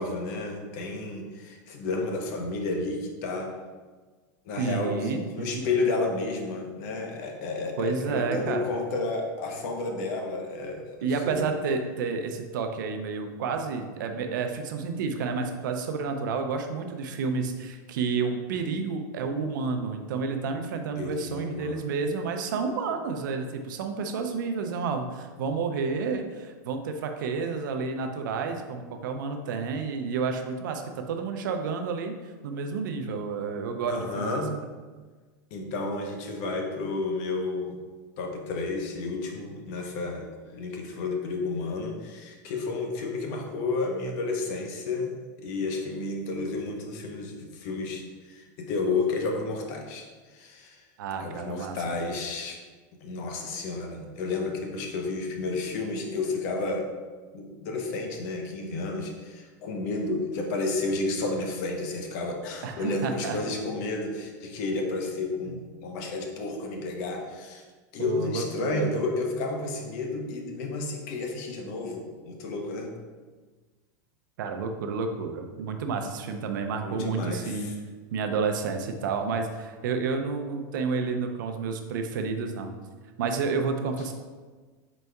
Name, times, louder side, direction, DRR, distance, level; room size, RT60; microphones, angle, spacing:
voice 1, 0.0-3.5 4.5-10.9 11.2-11.5 21.0-21.9 33.9-34.6 35.5-37.8 38.2-45.1 45.4-50.8 51.2-52.6 53.0-56.9 57.3-67.6 67.9-72.9 76.8-77.7, left 3 dB, 55° left, 2 dB, 0.8 m, -31 dB
voice 2, 4.6-5.6 7.8-8.6 11.0-30.8 31.1-34.4 51.0-52.1 62.6-63.5 68.0-68.9 74.4-77.7 78.1-82.7 83.2-84.1, right 5 dB, 80° right, 5 dB, 0.5 m, -30 dB
4.6 x 4.0 x 2.2 m, 1.4 s
supercardioid pair, 135°, 10 cm